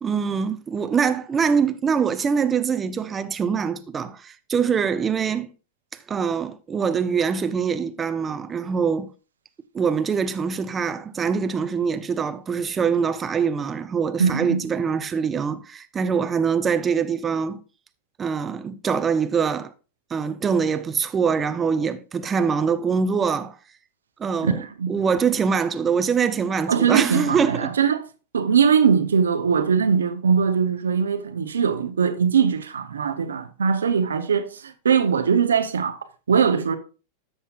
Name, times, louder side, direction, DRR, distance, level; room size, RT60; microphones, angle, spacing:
voice 1, 0.0-5.5 6.1-9.1 9.7-17.6 18.2-19.7 20.1-23.6 24.2-24.6 24.9-27.7, right 6 dB, 25° right, 0.7 m, -24 dB
voice 2, 14.2-14.6 24.4-24.5 24.8-24.9 26.7-28.0 28.3-36.0 36.3-36.8, right 6 dB, 85° right, 0.8 m, -21 dB
13.5 x 5.6 x 2.4 m
hypercardioid pair, 95°, 0 cm